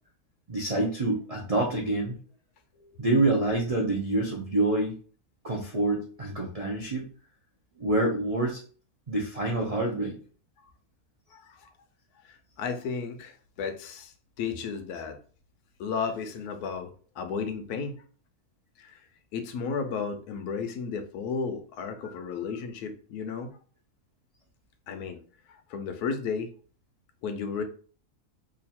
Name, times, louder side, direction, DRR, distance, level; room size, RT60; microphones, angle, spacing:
voice 1, 0.5-2.2 3.0-4.9 5.4-7.1 7.8-8.6 9.1-10.2, right 2 dB, 65° right, -1 dB, 0.3 m, -27 dB
voice 2, 11.3-11.7 12.2-15.2 15.8-16.9 17.2-18.0 18.8-19.0 19.3-23.6 24.9-25.2 25.5-26.5 27.2-27.6, left 5 dB, 90° left, 8 dB, 1.2 m, -33 dB
3.0 x 2.5 x 4.1 m, 0.41 s
omnidirectional pair, 1.6 m